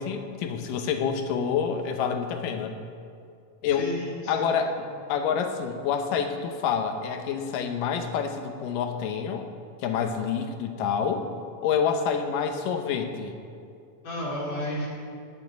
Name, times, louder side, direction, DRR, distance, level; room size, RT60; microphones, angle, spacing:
voice 1, 0.0-2.8 3.6-3.9 4.3-9.5 9.8-11.3 11.6-13.3, left 7 dB, 75° left, 6 dB, 2.5 m, -27 dB
voice 2, 3.7-4.6 14.0-14.9, left 1 dB, 55° left, -4 dB, 3.6 m, -32 dB
9.7 x 7.5 x 9.3 m, 2.5 s
omnidirectional pair, 3.9 m